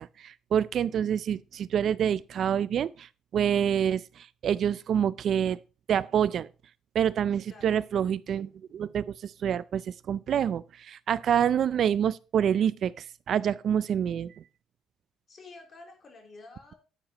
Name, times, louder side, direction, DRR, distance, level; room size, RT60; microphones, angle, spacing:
voice 1, 0.0-5.6 5.9-6.5 6.9-14.4, right 9 dB, 55° right, 0.3 m, -27 dB
voice 2, 15.3-16.7, left 3 dB, 40° left, 3.3 m, -49 dB
9.8 x 9.0 x 2.9 m
cardioid pair, 120°, 0 cm